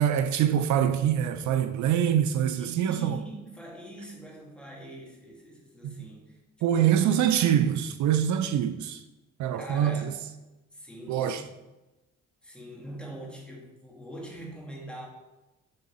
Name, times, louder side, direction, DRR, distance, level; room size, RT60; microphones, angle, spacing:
voice 1, 0.0-3.2 5.8-6.1 6.6-9.0 9.4-10.1 11.1-11.4, right 10 dB, 70° right, 0.5 m, -25 dB
voice 2, 2.6-6.4 6.7-7.1 9.5-10.2 10.7-11.4 12.4-15.1, right 1 dB, 5° left, 1.7 m, -43 dB
6.7 x 3.6 x 4.2 m
cardioid pair, 90°, 30 cm